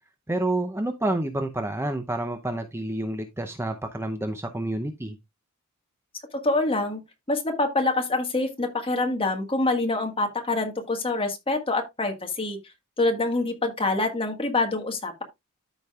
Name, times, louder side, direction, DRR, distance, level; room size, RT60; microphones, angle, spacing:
voice 1, 0.3-5.2, right 1 dB, 10° right, 0.6 m, -29 dB
voice 2, 6.4-7.0 7.3-12.6 13.0-15.2, left 2 dB, 25° left, 1.6 m, -25 dB
13.5 x 5.1 x 2.4 m
head